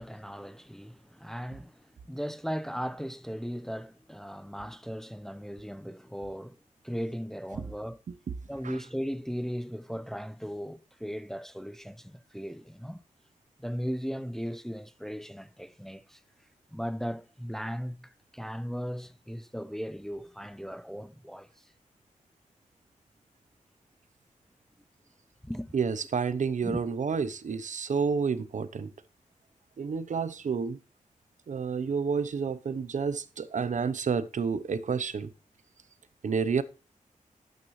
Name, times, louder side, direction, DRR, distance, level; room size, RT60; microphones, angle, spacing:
voice 1, 0.0-6.6 6.8-8.0 8.5-13.0 13.6-16.2 16.7-21.5 25.4-25.7 26.6-26.8, equal, 5° left, 0.5 m, -37 dB
voice 2, 25.7-28.9 29.8-30.8 31.5-35.3 36.2-36.6, right 5 dB, 65° right, 0.8 m, -30 dB
12.0 x 9.0 x 3.2 m
wide cardioid pair, 125°, 14 cm